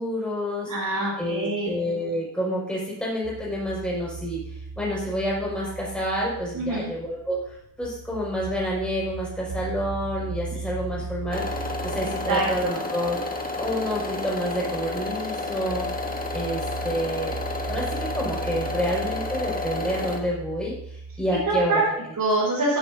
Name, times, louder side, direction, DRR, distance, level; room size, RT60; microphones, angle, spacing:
voice 1, 0.0-0.7 1.2-4.4 4.8-13.2 13.6-15.9 16.3-17.3 17.6-22.0, equal, 5° left, -5 dB, 5.4 m, -29 dB
voice 2, 0.7-1.7 6.5-6.9 12.3-12.8 21.5-21.8 22.2-22.8, right 2 dB, 60° right, -7 dB, 5.2 m, -25 dB
sound 1, 3.2-21.7, right 4 dB, 90° right, 4.0 m, -37 dB
sound 2, 11.3-20.2, left 3 dB, 25° left, 1.6 m, -31 dB
15.0 x 11.0 x 2.7 m, 0.71 s
cardioid pair, 85°, 37 cm